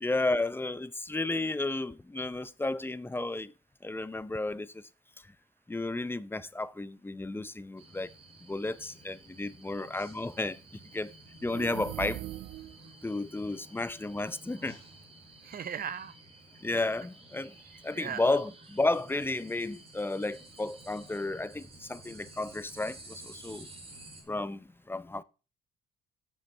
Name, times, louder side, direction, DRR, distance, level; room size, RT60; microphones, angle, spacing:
voice 1, 0.0-3.5 3.8-4.8 5.7-8.1 8.4-10.6 10.9-11.1 11.4-12.2 13.0-14.8 16.6-17.5 17.8-23.7 24.3-25.2, left 2 dB, 10° left, 0.5 m, -32 dB
sound 1, 7.8-24.2, right 2 dB, 30° right, 3.1 m, -52 dB
sound 2, 11.4-12.9, right 16 dB, 75° right, 0.4 m, -40 dB
voice 2, 15.4-16.1 16.7-16.8 17.9-18.2, right 8 dB, 45° right, 0.8 m, -37 dB
7.8 x 7.0 x 4.5 m
cardioid pair, 90°, 20 cm